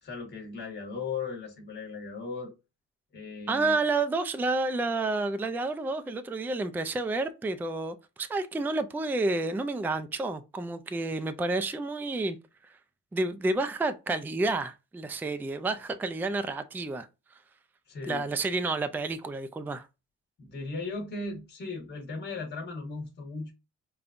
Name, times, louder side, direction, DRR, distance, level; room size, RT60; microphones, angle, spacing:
voice 1, 0.0-2.5 3.1-3.8 17.9-18.3 20.4-23.5, left 4 dB, 35° left, 1.3 m, -37 dB
voice 2, 3.5-12.4 13.1-17.1 18.1-19.9, right 3 dB, 5° right, 0.3 m, -30 dB
5.1 x 2.3 x 2.5 m
cardioid pair, 90°, 30 cm